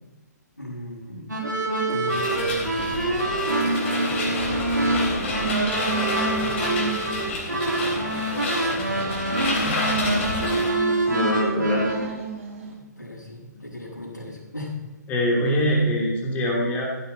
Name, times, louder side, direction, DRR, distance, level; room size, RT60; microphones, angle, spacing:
voice 1, 0.6-1.3 1.9-3.2 3.9-5.0 5.2-5.5 6.4-9.1 12.6-14.8, left 1 dB, 80° left, -10 dB, 5.3 m, -38 dB
sound 1, 1.3-12.1, right 2 dB, 80° right, 2.6 m, -25 dB
More car wash destroying, 2.1-10.7, left 2 dB, 40° left, 3.7 m, -30 dB
sound 2, 2.6-12.8, right 5 dB, 45° right, 2.3 m, -37 dB
voice 2, 9.6-10.3 11.1-12.0 15.1-16.9, equal, 15° left, -2 dB, 2.8 m, -24 dB
15.0 x 9.5 x 4.2 m, 1.1 s
figure-of-eight pair, 130°, 10 cm